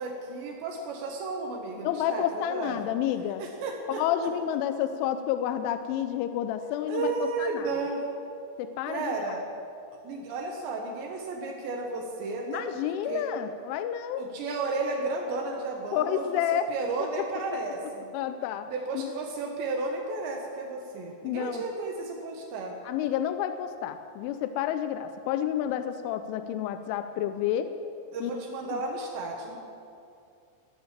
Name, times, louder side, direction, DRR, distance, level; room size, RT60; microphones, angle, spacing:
voice 1, 0.0-2.8 3.4-4.3 6.9-8.0 8.9-9.4 9.9-12.8 13.1-13.2 14.2-16.2 16.5-18.1 18.7-22.8 28.1-29.6, right 3 dB, 70° right, 2 dB, 3.3 m, -33 dB
voice 2, 1.8-3.4 4.0-7.7 8.6-9.1 12.5-14.2 15.9-16.7 18.1-18.7 19.0-19.1 21.2-21.6 22.9-27.7 28.2-28.6, left 10 dB, 90° left, 9 dB, 3.1 m, -30 dB
18.0 x 10.5 x 7.4 m, 2.5 s
omnidirectional pair, 5.5 m